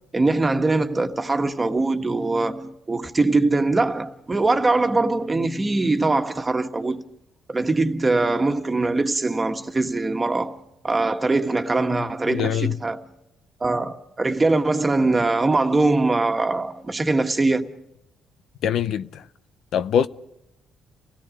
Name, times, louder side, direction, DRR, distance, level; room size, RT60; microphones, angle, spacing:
voice 1, 0.1-7.0 7.5-10.6 10.8-13.0 13.6-17.7, right 3 dB, 25° right, 1.6 m, -22 dB
voice 2, 12.3-12.8 18.6-19.2 19.7-20.1, left 9 dB, 75° left, 0.7 m, -23 dB
29.5 x 17.0 x 5.2 m
cardioid pair, 90°, 0 cm